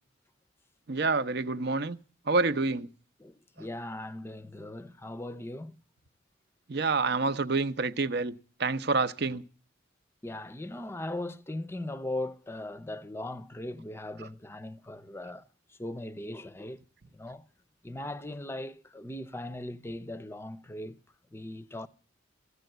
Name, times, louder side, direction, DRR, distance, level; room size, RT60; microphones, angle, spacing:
voice 1, 0.9-2.0 2.3-2.9 6.7-8.3 8.6-9.4, right 3 dB, 55° right, 0.7 m, -27 dB
voice 2, 3.2-5.7 10.2-16.8 17.1-17.4 17.8-21.0 21.3-21.9, left 1 dB, 10° left, 0.6 m, -39 dB
14.5 x 8.1 x 7.7 m
head